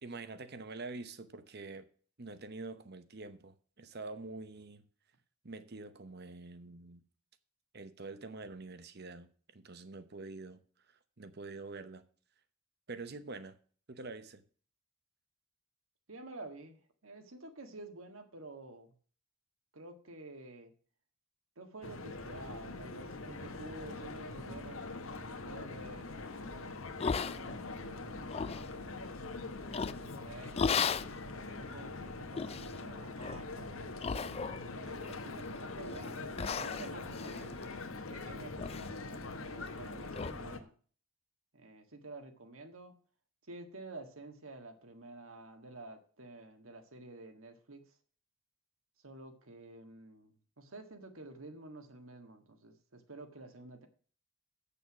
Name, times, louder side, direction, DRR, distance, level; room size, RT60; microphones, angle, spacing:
voice 1, 0.0-1.9 2.2-4.9 5.4-7.0 7.7-12.0 12.9-13.6 13.9-14.4, right 3 dB, 50° right, 0.9 m, -46 dB
voice 2, 16.1-18.9 19.7-20.7 21.6-26.8 27.3-28.3 28.6-29.3 29.8-30.5 31.3-37.6 38.1-40.7 41.5-42.9 43.5-47.8 49.0-53.9, right 2 dB, 75° right, 1.7 m, -50 dB
sound 1, 21.8-40.6, left 3 dB, 70° left, 1.2 m, -43 dB
sound 2, 27.0-27.8 28.2-28.7 29.7-30.1 30.6-31.1 31.7-31.8 32.4-32.7 33.2-33.4 34.0-34.7 35.0-35.6 36.0-36.1 36.4-38.2 38.6-38.9 39.1-39.2 39.7-39.8 40.1-40.3, left 6 dB, 30° left, 0.3 m, -35 dB
8.1 x 6.9 x 6.0 m
head